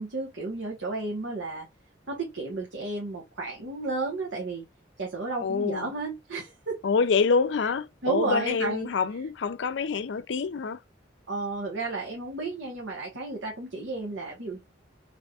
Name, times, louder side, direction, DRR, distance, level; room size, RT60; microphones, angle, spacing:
voice 1, 0.0-1.7 2.1-4.7 5.0-6.8 8.0-8.9 11.3-14.6, right 3 dB, 85° right, 1.2 m, -32 dB
voice 2, 5.4-5.9 6.8-10.8, left 5 dB, 70° left, 0.4 m, -26 dB
3.5 x 3.4 x 2.3 m
head